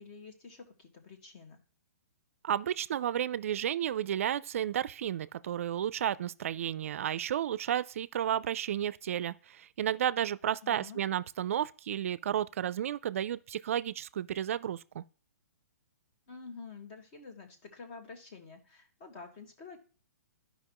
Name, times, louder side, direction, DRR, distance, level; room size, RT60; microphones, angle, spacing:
voice 1, 0.0-1.6 10.6-11.0 16.3-19.8, left 4 dB, 30° left, 1.6 m, -48 dB
voice 2, 2.4-15.0, right 10 dB, 55° right, 0.4 m, -32 dB
12.0 x 5.2 x 3.0 m
hypercardioid pair, 160°, 9 cm